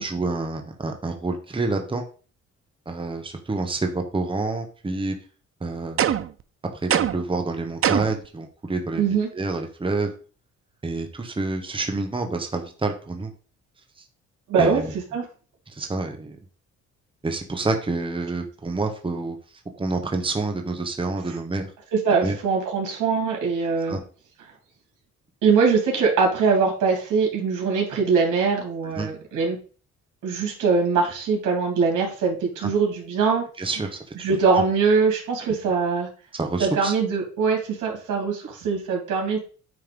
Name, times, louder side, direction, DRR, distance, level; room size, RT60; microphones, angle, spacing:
voice 1, 0.0-2.0 2.9-5.1 5.6-6.1 6.8-9.0 9.3-10.1 10.8-13.3 14.6-14.9 15.7-16.4 17.2-19.4 19.8-21.7 22.2-22.3 23.9-24.0 29.0-29.1 32.6-32.7 33.6-34.4 36.3-36.9, right 3 dB, 15° right, 4 dB, 1.2 m, -28 dB
sound 1, 6.0-6.4 6.9-7.3 7.8-8.3, right 10 dB, 45° right, 0.6 m, -23 dB
voice 2, 9.0-9.3 14.5-14.8 15.1-15.2 21.9-24.0 25.4-29.6 30.2-33.4 34.2-36.1 36.6-39.4, right 5 dB, 85° right, 0 dB, 3.0 m, -22 dB
9.5 x 3.4 x 5.2 m, 0.39 s
cardioid pair, 90°, 30 cm